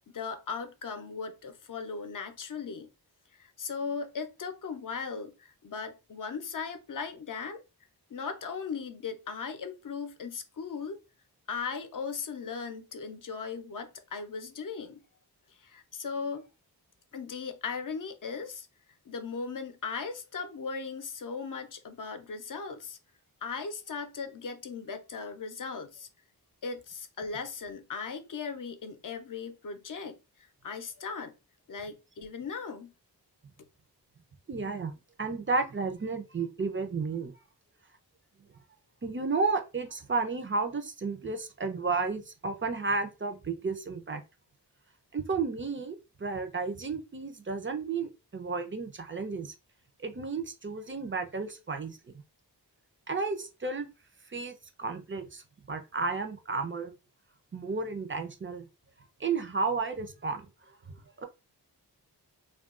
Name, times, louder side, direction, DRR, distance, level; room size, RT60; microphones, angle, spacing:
voice 1, 0.1-2.9 3.4-7.6 8.1-11.0 11.5-15.0 15.6-16.4 17.1-18.7 19.1-23.0 23.4-26.1 26.6-30.2 30.6-31.3 31.7-32.9, left 5 dB, 50° left, 0.6 m, -38 dB
voice 2, 34.5-34.9 35.2-37.3 39.0-44.2 45.1-49.5 50.0-52.2 53.1-53.9 54.3-56.9 57.5-58.7 59.2-61.3, right 4 dB, 30° right, 0.5 m, -32 dB
2.4 x 2.2 x 3.6 m
wide cardioid pair, 85°, 40 cm